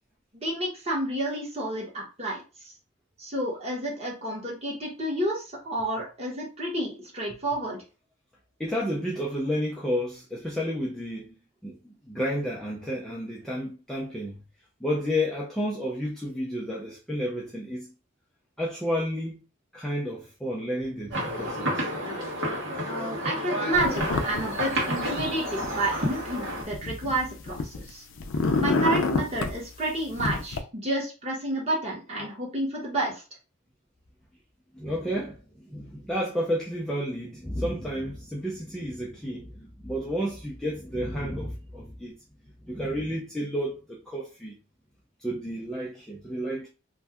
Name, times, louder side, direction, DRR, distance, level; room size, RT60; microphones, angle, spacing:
voice 1, 0.3-2.4 3.2-7.8 22.9-28.0 28.6-33.2, right 1 dB, 30° right, 1.1 m, -30 dB
voice 2, 8.6-14.4 14.8-17.9 18.6-19.4 19.7-21.9 34.7-42.1 42.7-44.5 45.2-46.7, equal, 5° left, 0.4 m, -31 dB
sound 1, 21.1-26.6, equal, 60° right, 1.1 m, -30 dB
sound 2, 23.7-24.4 24.7-25.7 26.3-27.9 28.2-29.6 30.2-30.6, left 3 dB, 70° left, 0.5 m, -27 dB
2.6 x 2.2 x 3.4 m
head